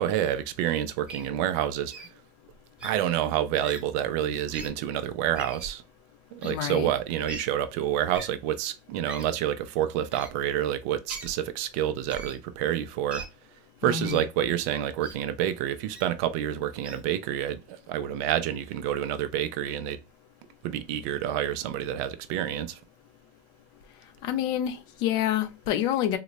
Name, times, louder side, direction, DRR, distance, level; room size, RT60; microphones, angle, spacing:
voice 1, 0.0-1.9 2.8-5.8 6.3-13.2 13.8-20.0 20.6-22.8, right 11 dB, 60° right, 0.5 m, -28 dB
Wild animals, 1.1-1.3 1.9-2.1 2.8-2.9 3.6-3.8 4.5-4.7 5.3-5.7 6.4-6.5 7.3-7.4 8.1-8.3 9.1-9.3 10.1-10.3 11.1-11.3 12.1-12.4 13.1-13.3 14.0-14.3 15.0-15.2 15.9-16.1 16.8-17.0, right 3 dB, 10° right, 0.7 m, -40 dB
voice 2, 6.4-6.9 13.9-14.3 24.2-26.2, left 11 dB, 50° left, 0.6 m, -28 dB
3.8 x 2.2 x 3.0 m
supercardioid pair, 150°, 9 cm